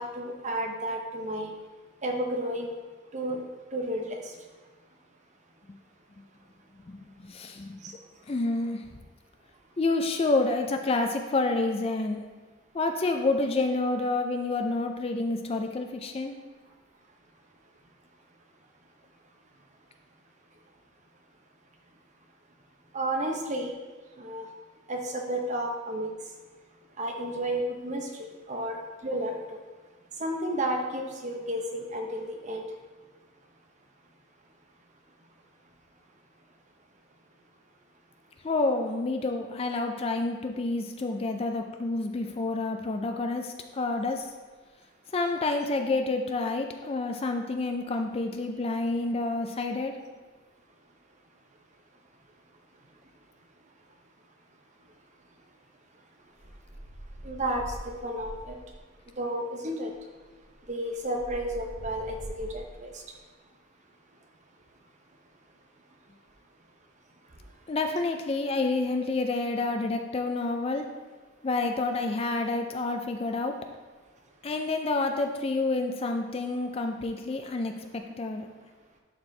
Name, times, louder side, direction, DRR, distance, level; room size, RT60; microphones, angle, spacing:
voice 1, 0.0-1.5 2.0-2.7 3.1-4.3 7.8-7.9 22.9-23.7 24.2-24.5 24.9-26.1 27.0-29.6 30.2-32.6 57.2-58.6 59.2-59.9 60.7-63.0, right 1 dB, 35° right, 3 dB, 0.8 m, -32 dB
voice 2, 6.9-8.0 8.3-8.8 9.8-12.2 12.7-16.4 38.4-44.3 45.1-50.0 67.7-70.8 71.4-73.6 74.4-78.5, left 3 dB, 25° left, 5 dB, 0.4 m, -29 dB
sound 1, 56.4-58.9 59.9-60.0 60.3-62.9, right 1 dB, 65° right, 1.7 m, -44 dB
11.5 x 4.4 x 3.2 m, 1.4 s
head